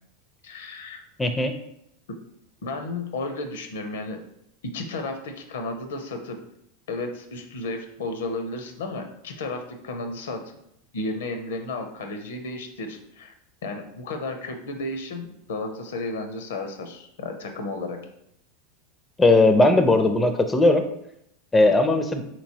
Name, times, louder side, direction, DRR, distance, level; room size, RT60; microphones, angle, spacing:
voice 1, 0.4-1.0 2.6-4.2 4.6-6.4 6.9-10.5 10.9-13.3 13.6-18.0, left 2 dB, 70° left, 6 dB, 0.5 m, -33 dB
voice 2, 1.2-1.5 19.2-20.8 21.5-22.2, left 2 dB, 15° left, 7 dB, 0.4 m, -18 dB
4.1 x 3.0 x 2.7 m, 0.75 s
hypercardioid pair, 90°, 0 cm